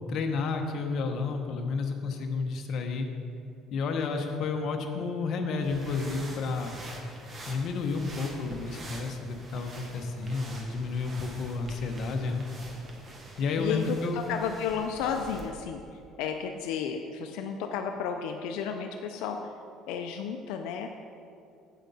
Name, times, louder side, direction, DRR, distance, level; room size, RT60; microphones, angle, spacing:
voice 1, 0.1-3.1 3.7-6.7 7.5-12.4 13.4-14.3, left 4 dB, 55° left, 4 dB, 0.9 m, -31 dB
sound 1, 5.6-15.5, right 1 dB, 30° right, 1.2 m, -45 dB
voice 2, 13.6-19.5 19.9-21.0, left 7 dB, 90° left, 4 dB, 0.4 m, -33 dB
8.4 x 8.0 x 4.0 m, 2.5 s
cardioid pair, 135°, 0 cm